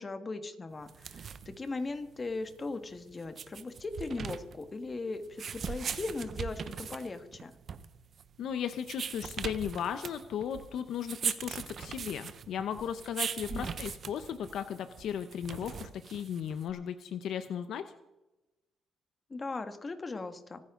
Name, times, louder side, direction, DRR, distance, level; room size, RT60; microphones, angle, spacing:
voice 1, 0.0-7.5 13.5-13.7 19.3-20.6, left 3 dB, 30° left, 8 dB, 1.7 m, -38 dB
sound 1, 0.8-16.7, right 7 dB, 55° right, 0.9 m, -40 dB
voice 2, 8.4-17.8, left 8 dB, 75° left, 10 dB, 0.8 m, -36 dB
25.0 x 9.8 x 3.8 m, 0.98 s
cardioid pair, 90°, 0 cm